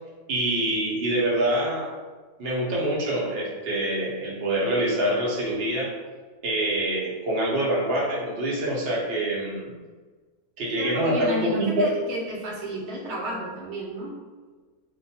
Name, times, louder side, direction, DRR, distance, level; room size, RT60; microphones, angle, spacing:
voice 1, 0.3-1.9 2.4-6.0 6.4-9.7 10.6-11.9, right 1 dB, 55° right, -5 dB, 0.7 m, -25 dB
voice 2, 10.8-14.2, equal, 75° right, -4 dB, 1.2 m, -32 dB
2.5 x 2.2 x 2.7 m, 1.4 s
omnidirectional pair, 1.6 m